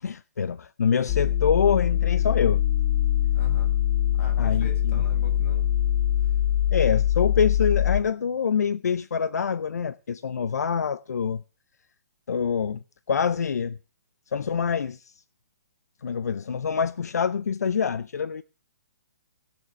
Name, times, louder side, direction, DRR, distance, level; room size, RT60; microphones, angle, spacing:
voice 1, 0.0-2.6 4.4-5.0 6.7-11.4 12.3-12.8 13.1-13.8 14.3-15.1 16.0-18.4, left 6 dB, 80° left, 0.6 m, -25 dB
sound 1, 1.1-8.0, left 11 dB, 25° left, 1.0 m, -23 dB
voice 2, 3.3-3.7 4.2-5.7, left 2 dB, 45° left, 7.5 m, -42 dB
19.0 x 7.0 x 6.1 m
hypercardioid pair, 150°, 9 cm